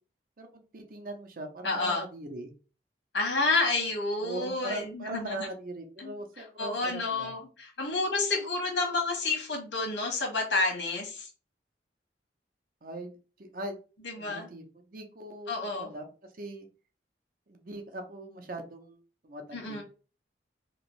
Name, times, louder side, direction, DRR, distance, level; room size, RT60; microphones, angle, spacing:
voice 1, 0.4-2.5 4.2-7.3 12.8-13.8 14.2-14.6 14.9-16.1 16.4-16.7 17.5-19.0 19.2-19.8, right 1 dB, 50° right, 4 dB, 0.6 m, -40 dB
voice 2, 1.6-2.0 3.1-5.5 6.0-6.2 6.6-11.3 14.0-14.5 15.5-15.9 19.5-19.8, left 3 dB, 80° left, 1 dB, 1.3 m, -30 dB
3.0 x 2.5 x 3.1 m, 0.35 s
head